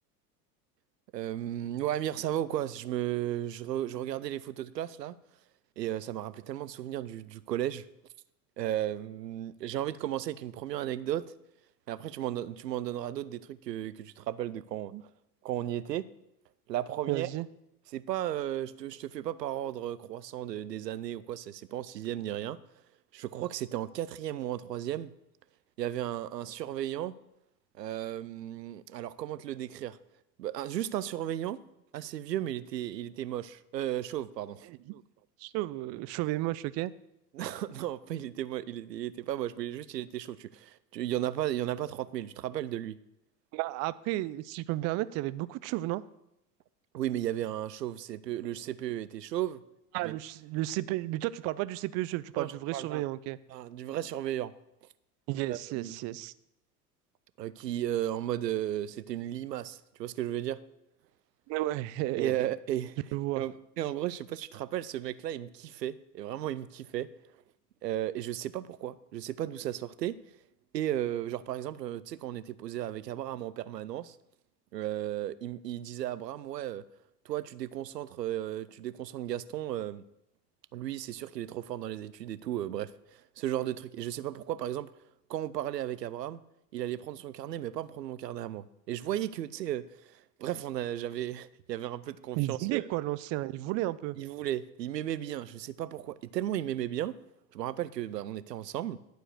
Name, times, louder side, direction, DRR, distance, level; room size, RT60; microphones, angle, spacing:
voice 1, 1.1-5.2 5.8-7.8 8.6-11.3 11.9-14.9 15.4-16.0 16.7-17.3 17.9-22.6 23.1-25.1 25.8-27.1 27.8-30.0 30.4-31.6 31.9-34.7 37.3-43.0 46.9-49.6 50.0-50.2 52.4-53.1 53.5-54.5 55.5-56.2 57.4-60.6 62.1-63.0 63.4-67.1 67.8-70.2 70.7-74.2 74.7-76.8 77.3-80.0 80.7-84.9 85.3-86.4 86.7-92.9 94.2-97.1 97.5-99.0, right 12 dB, 85° right, 0.6 m, -35 dB
voice 2, 17.1-17.5 34.7-35.0 35.4-36.9 43.5-46.0 49.9-53.4 55.3-56.3 61.5-62.4 63.1-63.4 92.4-94.2, right 17 dB, 35° right, 0.4 m, -33 dB
11.5 x 4.7 x 6.2 m
hypercardioid pair, 80°, 48 cm